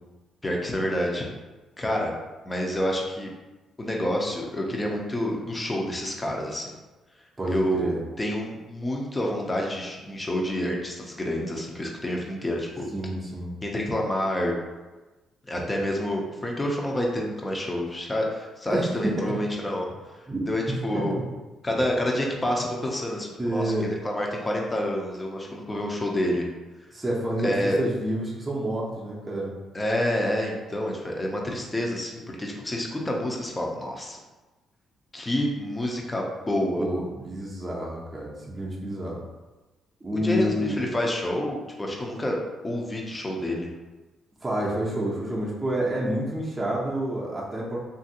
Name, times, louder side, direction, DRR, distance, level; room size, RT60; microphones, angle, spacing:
voice 1, 0.4-1.3 1.8-2.1 2.4-3.3 3.8-6.7 7.5-7.9 8.2-12.9 13.6-14.5 15.4-19.9 20.5-21.2 21.6-26.4 27.4-27.8 29.7-34.2 35.1-36.8 40.1-42.4 42.6-43.7, left 1 dB, 20° left, -1 dB, 0.6 m, -28 dB
voice 2, 7.4-8.0 12.9-13.5 18.7-19.3 20.3-20.5 20.9-21.2 23.4-23.9 26.9-29.5 36.8-39.2 40.0-40.8 44.4-47.8, right 1 dB, 20° right, -4 dB, 0.7 m, -28 dB
2.9 x 2.6 x 2.8 m, 1.2 s
cardioid pair, 90°, 0 cm